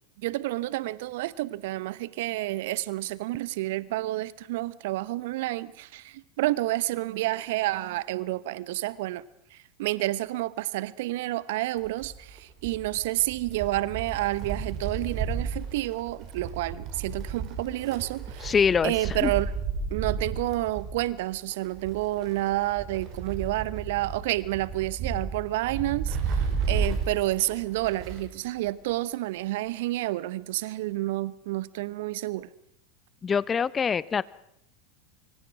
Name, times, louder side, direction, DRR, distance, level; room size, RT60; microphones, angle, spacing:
voice 1, 0.2-9.2 9.5-18.5 18.8-19.5 19.9-32.5, right 17 dB, 60° right, 1.0 m, -29 dB
Wind, 11.8-28.4 28.7-28.8 29.8-29.9, right 5 dB, 45° right, 5.9 m, -33 dB
voice 2, 18.4-19.3 33.2-34.2, left 6 dB, 25° left, 0.8 m, -24 dB
25.0 x 24.5 x 6.1 m
figure-of-eight pair, 85°, 0 cm